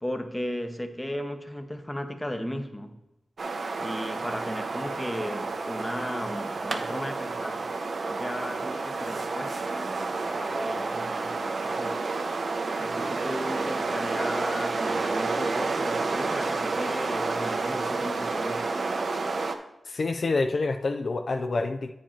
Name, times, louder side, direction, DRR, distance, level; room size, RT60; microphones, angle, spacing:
voice 1, 0.0-3.0 3.8-7.6 8.1-12.0 12.8-18.7, equal, 15° left, 7 dB, 0.8 m, -36 dB
sound 1, 3.4-19.5, right 3 dB, 65° right, 0.6 m, -30 dB
voice 2, 19.9-21.9, left 3 dB, 60° left, 6 dB, 0.4 m, -27 dB
8.9 x 5.0 x 4.4 m, 0.92 s
wide cardioid pair, 70°, 0 cm